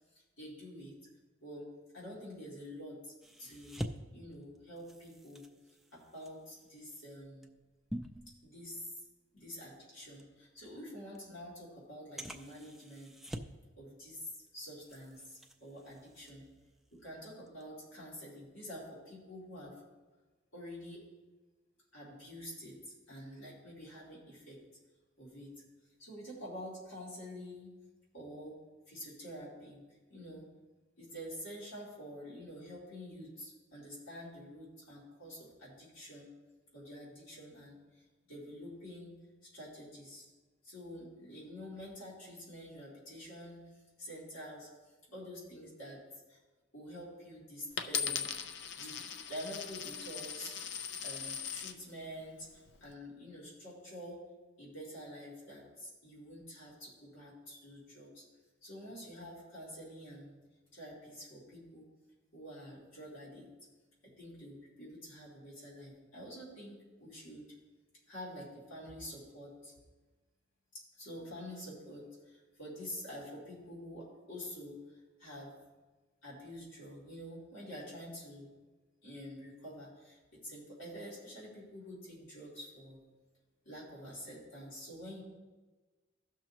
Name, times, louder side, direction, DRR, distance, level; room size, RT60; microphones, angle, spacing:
voice 1, 0.1-1.0 1.4-3.1 3.4-3.8 4.1-5.5 5.9-7.5 8.4-9.0 9.3-13.1 13.8-16.5 16.9-19.8 20.5-21.1 21.9-24.6 25.2-25.6 26.0-27.7 28.1-28.6 28.9-30.5 31.0-36.4 36.7-39.2 39.4-40.3 40.6-44.7 45.1-46.0 46.3-46.4 46.7-48.3 48.7-49.0 49.3-50.6 51.0-54.3 54.6-58.2 58.6-60.4 60.7-61.9 62.3-63.5 64.0-67.5 68.1-69.8 70.7-75.5 76.2-78.5 79.0-83.0 83.6-85.2, equal, 75° left, -7 dB, 3.0 m, -48 dB
sound 1, 3.2-9.0 9.4-9.6 10.2-10.3 11.1-11.2 12.2-13.7 14.0-14.5 14.8-17.0 17.4-17.6, equal, ahead, 0.4 m, -47 dB
Coin (dropping), 47.8-51.8 52.5-52.9, left 7 dB, 60° left, 0.5 m, -39 dB
15.5 x 6.1 x 3.0 m, 1.3 s
head